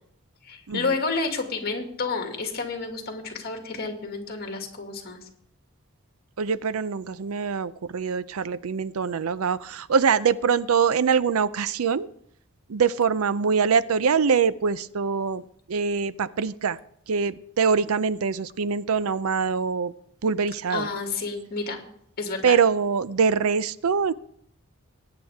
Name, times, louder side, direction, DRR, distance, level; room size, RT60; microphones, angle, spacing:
voice 1, 0.4-5.2 20.7-21.8 22.2-22.6, left 4 dB, 50° left, 3 dB, 2.2 m, -30 dB
voice 2, 6.4-12.1 12.7-15.4 15.7-16.8 17.1-19.9 20.2-20.9 22.4-24.1, right 6 dB, 85° right, 17 dB, 0.5 m, -24 dB
20.0 x 9.6 x 3.5 m, 0.69 s
head